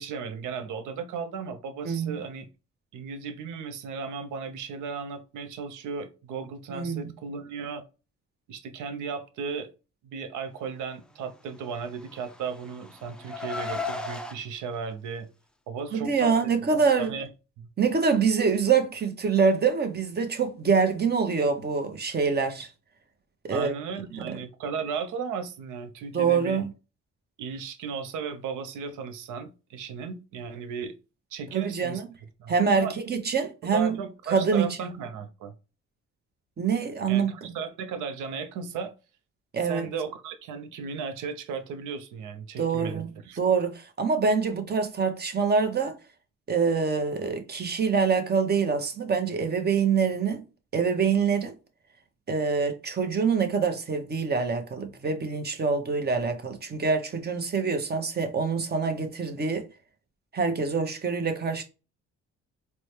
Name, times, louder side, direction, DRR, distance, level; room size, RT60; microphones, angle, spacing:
voice 1, 0.0-2.5 2.9-7.8 8.5-9.7 10.0-15.3 15.7-16.3 17.0-17.3 17.6-17.7 23.5-26.6 27.4-30.9 31.3-32.0 32.4-33.0 33.6-35.5 37.1-38.9 39.6-43.4, right 6 dB, 85° right, 0.6 m, -35 dB
voice 2, 1.8-2.2 6.7-7.1 15.9-17.1 17.8-22.7 23.4-23.7 24.1-24.4 26.1-26.7 31.5-32.1 32.5-34.0 34.3-34.8 36.6-37.3 39.5-39.9 42.6-45.9 46.5-50.4 50.7-51.5 52.3-59.6 60.3-61.6, right 5 dB, 35° right, 0.8 m, -25 dB
Car, 11.8-14.4, left 3 dB, 5° left, 0.3 m, -35 dB
4.1 x 2.2 x 3.1 m
cardioid pair, 90°, 30 cm